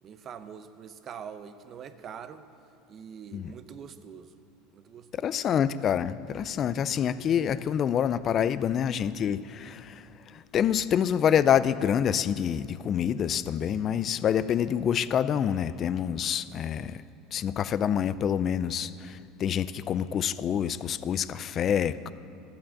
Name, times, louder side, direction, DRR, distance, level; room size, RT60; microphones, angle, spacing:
voice 1, 0.0-2.4 2.9-4.3 4.7-5.4, right 7 dB, 40° right, 11 dB, 0.7 m, -44 dB
voice 2, 5.1-17.0 17.3-22.1, left 9 dB, 40° left, 15 dB, 0.4 m, -27 dB
13.0 x 8.8 x 7.3 m, 2.5 s
supercardioid pair, 120°, 0 cm